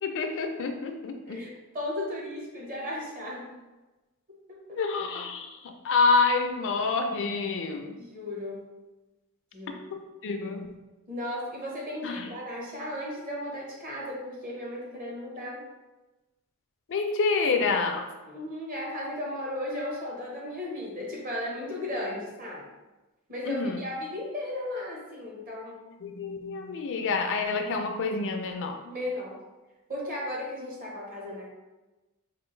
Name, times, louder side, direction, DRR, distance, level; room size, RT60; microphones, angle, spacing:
voice 1, 0.0-1.4 4.8-8.0 9.9-10.7 12.0-12.3 16.9-18.1 23.5-23.8 26.0-28.8, left 4 dB, 60° left, 5 dB, 0.4 m, -28 dB
voice 2, 1.3-3.5 4.3-4.8 8.0-8.6 9.5-9.8 11.1-15.6 18.3-22.6 23.3-25.8 28.8-29.4 29.9-31.5, left 1 dB, 40° right, -3 dB, 1.1 m, -35 dB
4.4 x 2.5 x 3.1 m, 1.1 s
head